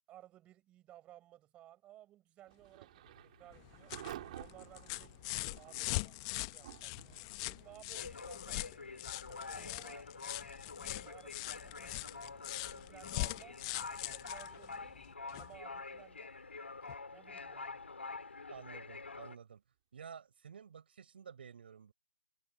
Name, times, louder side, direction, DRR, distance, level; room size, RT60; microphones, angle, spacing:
voice 1, 0.1-3.9 4.3-5.1 5.6-8.8 9.3-10.1 10.8-13.6 14.1-14.9 15.4-16.3 17.1-17.8, right 13 dB, 20° right, 6.5 m, -58 dB
Thunder / Rain, 2.4-19.2, right 13 dB, 40° right, 5.1 m, -56 dB
sound 1, 3.1-4.3 4.6-4.8 5.1-19.4, left 3 dB, 80° left, 5.2 m, -47 dB
sound 2, 3.5-15.6 16.9-17.0, left 25 dB, 30° left, 0.9 m, -42 dB
voice 2, 18.5-19.6 19.9-21.9, right 7 dB, 60° right, 4.6 m, -52 dB
figure-of-eight pair, 140°, 6 cm